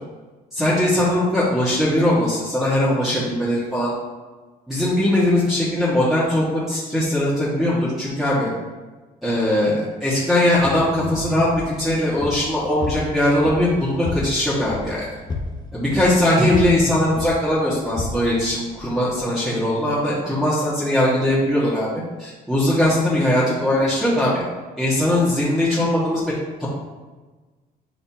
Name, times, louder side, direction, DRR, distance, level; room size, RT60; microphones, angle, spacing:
voice 1, 0.5-3.9 4.7-8.5 9.2-15.1 15.7-21.9 22.2-24.5 24.8-26.3 26.6-26.7, left 1 dB, ahead, -10 dB, 1.8 m, -20 dB
sound 1, 10.5-19.2, left 3 dB, 25° left, 1.0 m, -33 dB
11.0 x 4.1 x 3.0 m, 1.3 s
cardioid pair, 110°, 17 cm